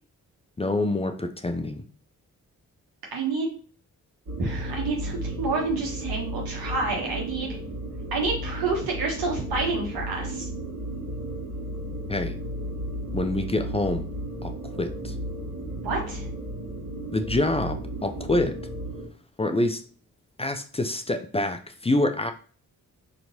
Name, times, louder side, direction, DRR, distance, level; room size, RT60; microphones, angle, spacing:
voice 1, 0.6-1.8 12.1-12.4 13.1-14.1 14.4-15.1 17.1-18.6 19.4-19.8 20.4-22.3, left 2 dB, 15° left, 6 dB, 0.5 m, -26 dB
voice 2, 3.1-3.5 4.4-7.6 8.1-10.5 15.8-16.3, right 3 dB, 85° right, -1 dB, 1.3 m, -28 dB
sound 1, 4.3-19.1, right 1 dB, 50° right, 1.4 m, -34 dB
4.3 x 3.0 x 2.7 m, 0.41 s
supercardioid pair, 40°, 35 cm